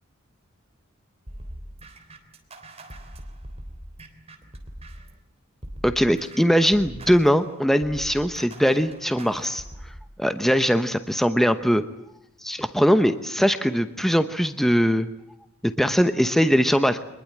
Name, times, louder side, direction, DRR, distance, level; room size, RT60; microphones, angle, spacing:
sound 1, 1.3-5.2 5.6-10.0, right 1 dB, 30° right, 3.4 m, -41 dB
voice 1, 5.8-9.6 10.2-11.8 12.4-15.1 15.6-17.0, equal, ahead, 10 dB, 0.9 m, -21 dB
24.5 x 21.0 x 8.7 m, 0.79 s
head